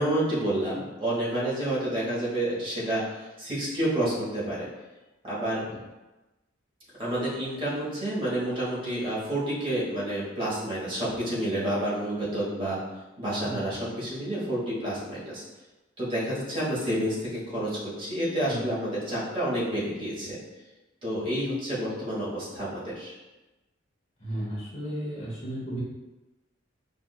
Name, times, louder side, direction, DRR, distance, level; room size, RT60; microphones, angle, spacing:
voice 1, 0.0-4.7 5.2-5.6 7.0-12.8 13.2-15.4 16.0-20.4 21.0-23.2, right 1 dB, 25° right, -8 dB, 1.4 m, -29 dB
voice 2, 24.2-25.8, right 1 dB, 35° left, -6 dB, 0.9 m, -34 dB
5.9 x 2.5 x 2.4 m, 1.1 s
head